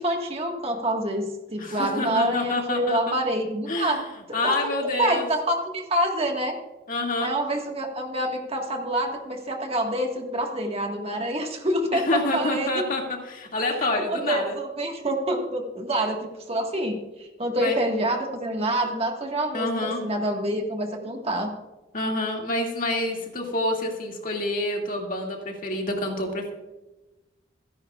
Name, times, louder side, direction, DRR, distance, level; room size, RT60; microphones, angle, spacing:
voice 1, 0.0-4.0 4.3-4.7 5.0-6.6 7.2-12.8 14.0-17.0 17.4-21.5, right 1 dB, 30° right, 2 dB, 1.6 m, -27 dB
voice 2, 1.6-3.2 3.7-4.0 4.3-5.3 6.9-7.3 11.9-14.6 17.6-17.8 19.5-20.0 21.9-26.5, left 2 dB, 45° left, 1 dB, 2.2 m, -27 dB
28.0 x 10.5 x 2.4 m, 1.1 s
head